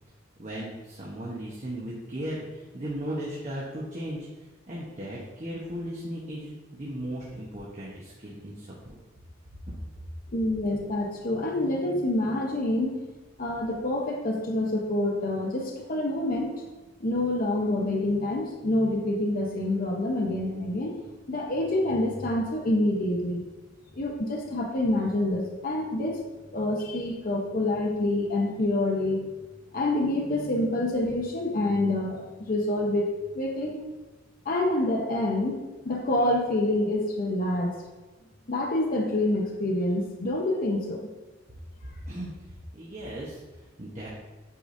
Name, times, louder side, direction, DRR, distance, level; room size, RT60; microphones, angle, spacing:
voice 1, 0.4-9.0 9.7-9.8 41.8-42.3 42.7-44.1, equal, 35° right, -5 dB, 1.0 m, -37 dB
voice 2, 10.3-13.0 13.4-16.6 17.0-21.0 21.3-23.4 23.9-26.2 26.5-29.3 29.7-33.8 34.4-35.6 35.8-37.7 38.5-41.1, left 1 dB, 45° left, 0 dB, 0.7 m, -27 dB
8.4 x 4.8 x 2.6 m, 1.2 s
head